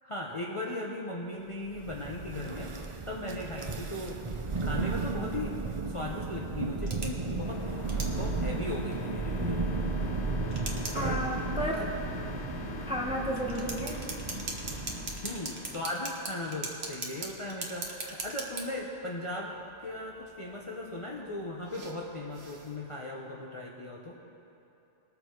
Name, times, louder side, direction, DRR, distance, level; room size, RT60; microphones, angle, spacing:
voice 1, 0.0-4.3 4.6-5.5 5.9-9.8 11.8-11.9 15.1-19.5 19.8-24.2, left 1 dB, 30° left, -3 dB, 0.8 m, -38 dB
Thunder, 1.7-15.4, right 3 dB, 35° right, 0.6 m, -34 dB
sound 1, 4.2-22.8, right 3 dB, 60° right, 1.5 m, -44 dB
sound 2, 7.4-15.8, left 4 dB, 70° left, 1.1 m, -43 dB
voice 2, 10.9-11.8 12.9-14.0, equal, 5° right, -1 dB, 1.1 m, -32 dB
20.5 x 6.9 x 4.6 m, 2.8 s
omnidirectional pair, 1.2 m